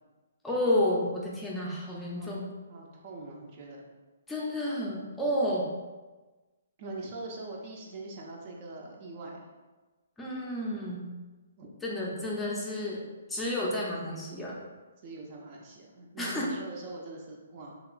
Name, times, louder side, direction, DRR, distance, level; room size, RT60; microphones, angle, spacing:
voice 1, 0.4-2.5 4.3-5.7 10.2-11.1 11.8-13.0 13.3-14.6 16.2-16.5, left 1 dB, 10° left, -5 dB, 0.5 m, -30 dB
voice 2, 2.7-3.9 6.8-9.5 11.6-11.7 15.0-17.8, right 2 dB, 40° right, -1 dB, 0.5 m, -43 dB
2.9 x 2.8 x 2.4 m, 1.2 s
figure-of-eight pair, 130°, 0 cm